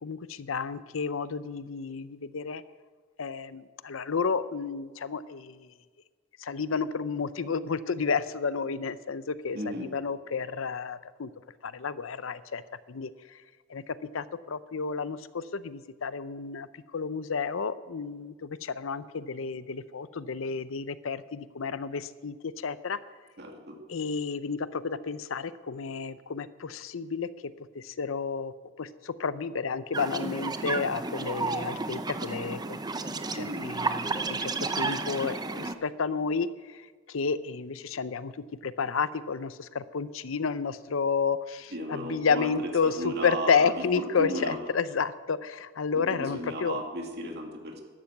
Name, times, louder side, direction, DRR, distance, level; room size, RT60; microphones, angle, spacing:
voice 1, 0.0-2.6 3.2-5.7 6.4-11.3 11.6-12.6 12.9-13.4 13.7-23.0 23.9-27.3 27.7-32.8 33.3-38.3 38.6-46.8, left 5 dB, 80° left, 15 dB, 0.6 m, -31 dB
voice 2, 9.5-9.9 23.4-23.8 33.3-33.7 41.7-44.6 45.9-47.8, equal, 55° right, 2 dB, 2.4 m, -35 dB
sound 1, 29.9-35.7, right 3 dB, 20° right, 0.7 m, -32 dB
12.5 x 11.5 x 7.9 m, 1.4 s
head